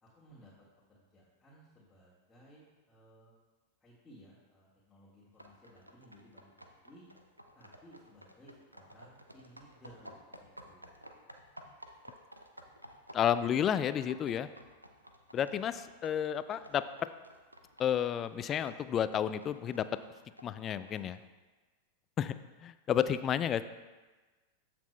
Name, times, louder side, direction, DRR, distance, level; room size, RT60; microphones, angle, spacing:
voice 1, 0.0-3.4 3.8-7.0 7.5-11.3, equal, 10° left, -8 dB, 1.8 m, -59 dB
sound 1, 5.4-21.2, equal, 85° right, 0.6 m, -54 dB
voice 2, 13.1-14.5 15.3-16.8 17.8-19.8 20.4-21.2 22.2-22.4 22.6-23.6, left 9 dB, 30° left, 13 dB, 0.3 m, -31 dB
14.0 x 5.9 x 2.2 m, 1.2 s
figure-of-eight pair, 90°, 0 cm